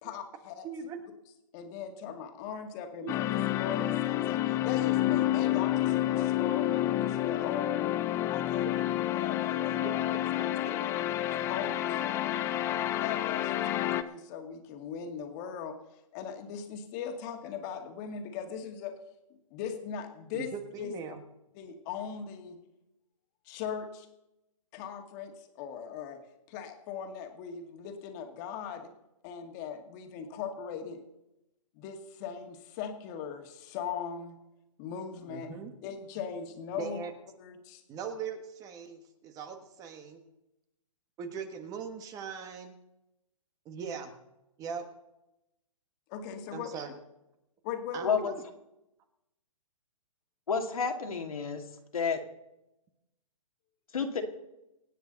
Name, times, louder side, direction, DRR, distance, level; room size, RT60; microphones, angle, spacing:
voice 1, 0.0-0.7 1.5-7.8 8.3-8.7 9.1-10.8 11.3-12.3 13.0-15.8 16.1-19.0 19.5-20.5 20.8-20.9 21.5-22.6 23.5-24.1 24.7-26.2 26.5-28.9 29.2-31.0 31.8-34.3 34.8-35.5 35.8-37.0 37.4-37.8 46.1-46.7 47.6-48.2, left 7 dB, 30° left, 5 dB, 2.1 m, -39 dB
voice 2, 0.6-1.0 3.0-3.1 8.6-8.7 9.8-10.7 20.3-21.2 35.3-35.7 36.8-37.1 37.9-40.2 41.2-42.8 43.6-44.1 44.6-44.8 46.5-46.9 47.9-48.4, right 6 dB, 20° right, 8 dB, 1.5 m, -40 dB
sound 1, 3.1-14.0, left 13 dB, 15° left, 0.5 m, -29 dB
voice 3, 48.0-48.3 50.5-51.6 51.9-52.2 53.9-54.2, left 6 dB, 80° left, 4 dB, 2.4 m, -30 dB
25.5 x 9.2 x 4.0 m, 0.91 s
hypercardioid pair, 145°, 18 cm